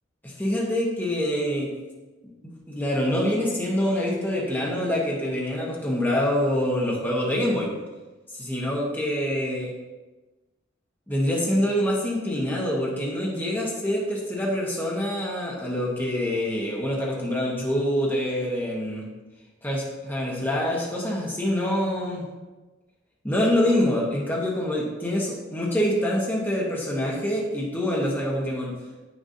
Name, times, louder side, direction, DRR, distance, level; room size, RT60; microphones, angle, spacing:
voice 1, 0.2-1.7 2.4-7.7 8.3-9.7 11.1-19.1 19.6-22.2 23.2-28.7, left 1 dB, 10° left, -4 dB, 1.1 m, -25 dB
8.9 x 6.4 x 2.7 m, 1.2 s
head